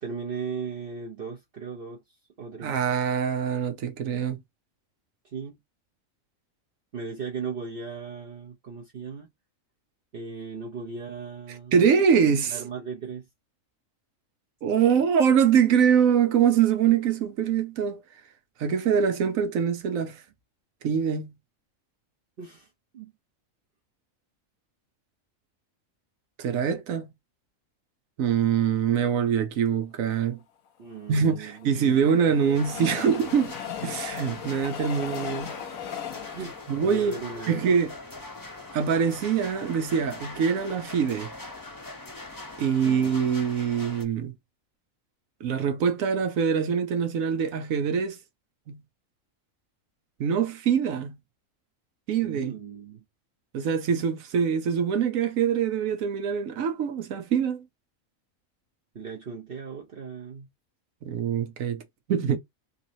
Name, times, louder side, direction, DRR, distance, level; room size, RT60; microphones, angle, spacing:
voice 1, 0.0-2.0 2.4-2.8 5.3-5.6 6.9-9.3 10.1-11.7 12.5-13.2 15.0-15.1 22.4-22.7 22.9-23.1 30.8-32.0 32.8-33.3 36.3-37.7 42.8-43.3 52.2-53.0 58.9-60.5, right 5 dB, 50° right, 0.9 m, -37 dB
voice 2, 2.6-4.4 11.7-12.6 14.6-18.0 18.6-20.2 20.8-21.3 26.4-27.1 28.2-30.4 31.1-33.5 33.8-35.5 36.7-37.2 37.5-37.9 38.7-41.3 42.6-44.3 45.4-48.2 48.7-48.8 50.2-51.2 52.1-52.6 53.5-57.6 61.0-61.8 62.1-62.4, right 7 dB, 85° right, 1.2 m, -24 dB
Train, 31.0-38.2 38.7-38.8 39.0-39.1, left 9 dB, 90° left, 1.2 m, -38 dB
sound 1, 32.6-44.0, left 2 dB, 20° left, 0.6 m, -42 dB
3.8 x 3.0 x 2.7 m
omnidirectional pair, 1.4 m